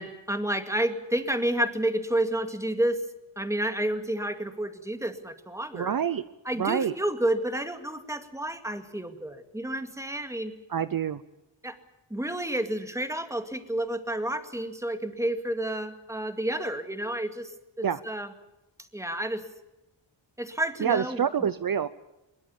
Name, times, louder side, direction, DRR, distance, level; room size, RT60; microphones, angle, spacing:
voice 1, 0.0-3.0 3.4-5.9 6.5-10.6 11.6-11.8 12.1-17.5 17.8-18.3 18.9-19.4 20.4-21.2, right 1 dB, 5° right, 7 dB, 2.1 m, -30 dB
voice 2, 5.7-6.2 6.6-6.9 10.7-11.2 17.8-18.0 20.8-21.9, right 8 dB, 50° right, 14 dB, 0.7 m, -26 dB
22.0 x 22.0 x 7.1 m, 0.98 s
wide cardioid pair, 120°, 45 cm